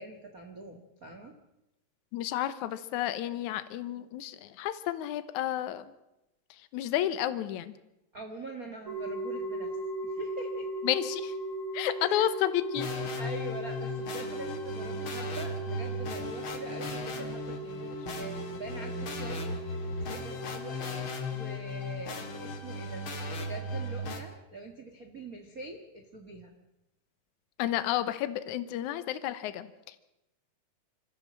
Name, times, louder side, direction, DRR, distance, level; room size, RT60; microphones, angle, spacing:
voice 1, 0.0-1.3 8.1-9.7 10.0-10.7 12.1-12.3 13.2-19.5 20.0-21.0 21.3-23.1 23.3-26.5, right 2 dB, 70° right, 3 dB, 0.8 m, -44 dB
voice 2, 2.1-5.9 6.7-7.7 10.8-11.3 11.7-12.9 27.6-30.0, left 12 dB, 80° left, 12 dB, 1.7 m, -31 dB
sound 1, 8.9-21.4, right 1 dB, 20° right, 3.9 m, -38 dB
sound 2, 12.8-24.2, left 2 dB, 40° left, 2.3 m, -37 dB
25.5 x 15.0 x 7.4 m, 0.93 s
omnidirectional pair, 4.7 m